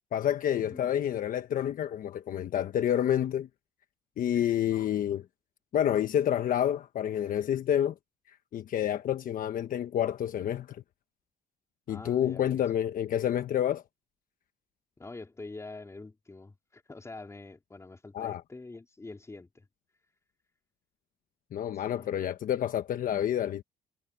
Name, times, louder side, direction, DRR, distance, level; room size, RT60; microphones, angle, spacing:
voice 1, 0.1-3.5 4.2-5.2 5.7-7.9 8.3-10.8 11.9-13.8 18.1-18.4 21.5-23.6, left 10 dB, 55° left, 1.2 m, -29 dB
voice 2, 11.9-12.6 15.0-19.7 21.8-22.1, left 3 dB, 15° left, 4.2 m, -45 dB
cardioid pair, 110°, 17 cm